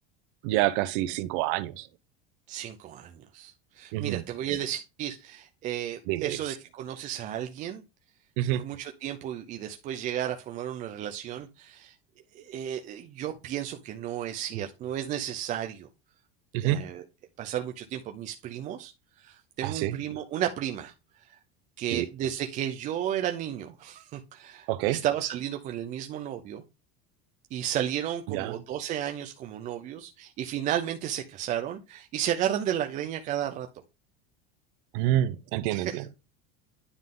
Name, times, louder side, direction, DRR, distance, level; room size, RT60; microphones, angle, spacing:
voice 1, 0.4-1.8 3.9-4.2 6.1-6.4 8.4-8.6 16.5-16.8 19.6-20.0 21.9-22.0 24.7-25.0 28.3-28.5 34.9-35.9, right 14 dB, 60° right, 0.6 m, -27 dB
voice 2, 2.5-7.8 8.5-11.9 12.3-15.9 16.6-17.0 17.4-18.9 19.2-20.9 21.3-21.4 21.8-26.6 27.5-33.7 35.7-36.1, right 11 dB, 25° right, 0.4 m, -33 dB
9.7 x 3.6 x 3.6 m
cardioid pair, 165°, 31 cm